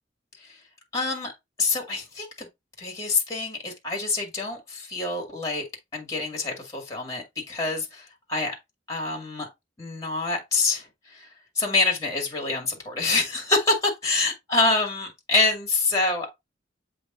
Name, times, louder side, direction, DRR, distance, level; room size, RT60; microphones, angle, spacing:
voice 1, 0.9-1.3 1.6-2.5 2.8-5.6 5.9-8.5 8.9-9.5 9.8-10.9 11.1-11.3 11.6-16.3, left 3 dB, 20° left, 2.3 m, -26 dB
7.8 x 3.4 x 3.9 m
head